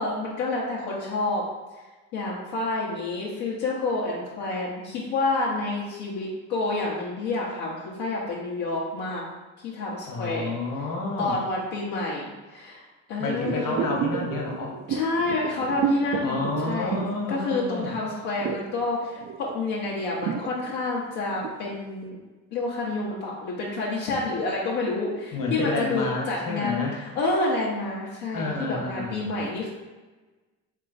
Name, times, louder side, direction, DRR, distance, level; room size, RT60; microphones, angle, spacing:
voice 1, 0.0-1.4 2.1-9.2 9.6-10.5 11.2-13.9 14.9-17.0 17.3-22.2 22.5-29.7, left 2 dB, 80° left, -6 dB, 1.0 m, -29 dB
voice 2, 10.0-11.4 13.2-14.8 16.2-17.9 25.3-27.0 28.3-29.4, left 3 dB, 55° left, -1 dB, 1.3 m, -30 dB
sound 1, 13.4-17.9 18.1-21.6 22.0-22.1, right 7 dB, 50° right, 0.5 m, -31 dB
3.6 x 3.3 x 3.9 m, 1.2 s
supercardioid pair, 70°, 38 cm